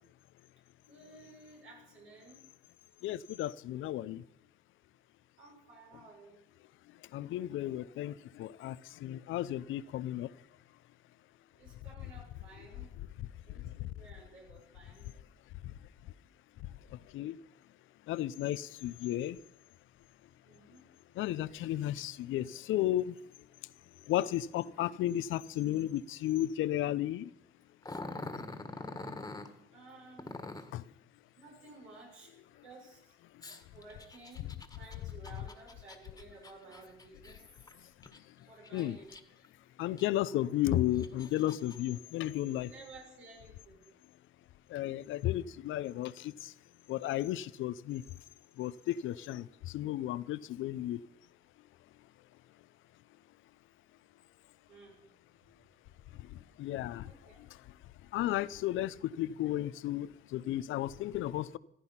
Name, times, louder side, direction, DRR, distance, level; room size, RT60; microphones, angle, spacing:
voice 1, 0.9-2.4 5.4-6.4 11.5-12.9 13.4-15.1 20.4-20.9 29.7-30.3 31.3-32.3 32.6-33.1 33.7-37.4 38.4-39.1 42.6-43.8 54.7-55.0 57.0-57.4, right 3 dB, 85° right, -3 dB, 6.6 m, -54 dB
voice 2, 3.0-4.2 6.9-10.4 13.2-13.9 15.6-15.7 16.0-16.1 16.6-17.4 18.1-19.4 21.1-23.2 24.1-27.3 30.7-30.9 33.3-33.6 38.0-39.0 39.8-42.7 44.7-46.5 46.9-48.0 48.6-51.0 56.1-57.8 58.1-61.6, left 13 dB, 85° left, 17 dB, 0.6 m, -34 dB
Growling, 27.8-29.5 30.2-30.8 33.4-38.2 38.6-39.5 40.0-40.1 40.7-41.8, left 2 dB, 15° left, 1.7 m, -45 dB
15.0 x 14.0 x 5.7 m, 0.77 s
cardioid pair, 90°, 20 cm